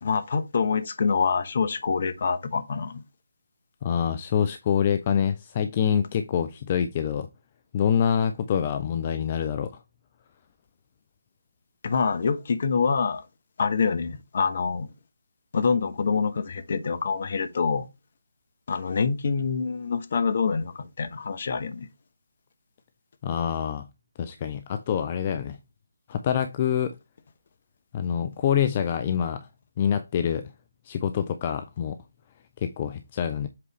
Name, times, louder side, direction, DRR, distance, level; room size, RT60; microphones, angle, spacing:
voice 1, 0.0-3.0 11.8-13.3 13.6-14.9 15.5-17.9 18.7-21.9, left 5 dB, 45° left, 1.0 m, -26 dB
voice 2, 3.8-7.3 7.7-9.7 23.2-23.9 24.2-25.6 26.1-26.9 27.9-29.5 29.8-30.5 30.8-32.0 32.6-33.5, left 8 dB, 30° left, 0.6 m, -26 dB
7.7 x 4.7 x 3.1 m
figure-of-eight pair, 150°, 0 cm